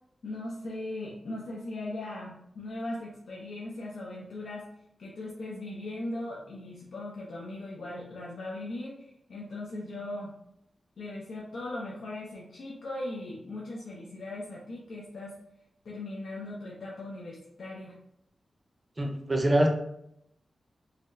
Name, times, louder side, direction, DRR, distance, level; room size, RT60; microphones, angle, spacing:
voice 1, 0.2-4.7 5.0-10.3 11.0-15.4 15.8-17.9, left 2 dB, 75° left, -4 dB, 0.6 m, -39 dB
voice 2, 19.0-19.7, right 1 dB, 25° right, 2 dB, 0.5 m, -24 dB
4.0 x 2.0 x 2.6 m, 0.76 s
wide cardioid pair, 135°, 0 cm